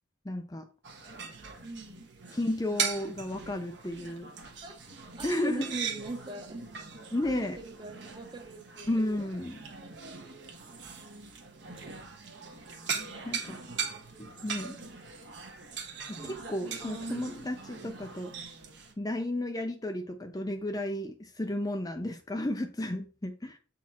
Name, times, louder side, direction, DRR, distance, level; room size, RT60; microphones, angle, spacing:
voice 1, 0.2-0.7 2.3-4.3 5.2-5.8 7.1-7.6 8.9-9.6 13.2-13.6 14.2-14.8 16.1-18.3 19.0-23.6, left 1 dB, 20° left, 5 dB, 0.5 m, -33 dB
sound 1, 0.8-18.9, right 6 dB, 55° right, 1.3 m, -40 dB
voice 2, 1.6-2.1 4.6-4.8 5.2-6.6 7.2-8.9 11.0-11.3 13.1-13.3 13.6-13.8 14.7-14.8, right 2 dB, 25° right, 5 dB, 1.0 m, -42 dB
7.3 x 4.2 x 4.1 m, 0.37 s
head